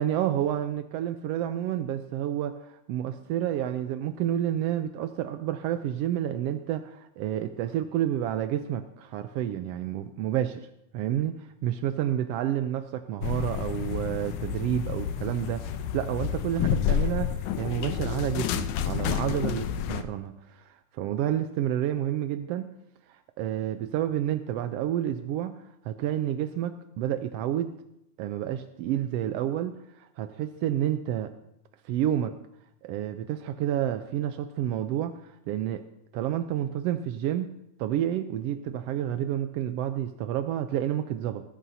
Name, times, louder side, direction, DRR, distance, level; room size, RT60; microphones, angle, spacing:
voice 1, 0.0-10.7 10.9-22.7 23.1-27.7 28.2-31.3 31.8-32.3 32.8-35.8 36.1-37.5 37.8-41.4, right 11 dB, 80° right, 8 dB, 1.4 m, -30 dB
sound 1, 13.2-20.0, left 9 dB, 85° left, 2.2 m, -30 dB
20.0 x 15.0 x 2.7 m, 0.80 s
omnidirectional pair, 3.4 m